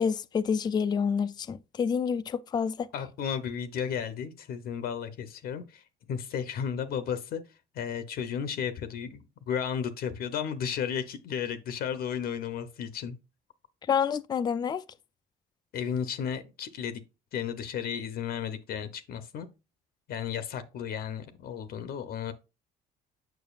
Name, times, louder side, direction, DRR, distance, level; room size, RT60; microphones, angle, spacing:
voice 1, 0.0-2.9 13.9-14.8, left 6 dB, 25° left, 0.3 m, -28 dB
voice 2, 2.9-7.4 7.7-13.2 15.7-17.0 17.3-19.5 20.1-22.3, left 8 dB, 65° left, 0.7 m, -34 dB
7.0 x 6.0 x 2.4 m
cardioid pair, 110°, 17 cm